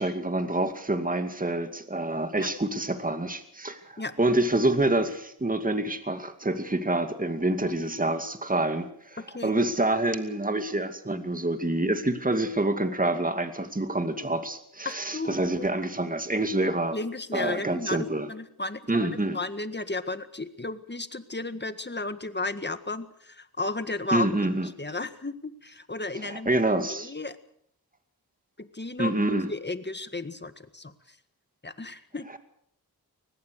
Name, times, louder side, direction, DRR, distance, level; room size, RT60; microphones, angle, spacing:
voice 1, 0.0-8.9 9.4-17.0 17.3-18.3 18.9-19.4 24.1-24.7 26.2-27.1 29.0-29.5, right 2 dB, 20° right, 8 dB, 2.4 m, -27 dB
voice 2, 9.2-9.6 14.9-15.8 16.9-24.3 24.6-26.5 26.9-27.4 28.6-31.2 31.6-32.4, left 2 dB, 25° left, 11 dB, 1.8 m, -34 dB
23.5 x 19.5 x 6.6 m, 0.67 s
wide cardioid pair, 60°, 38 cm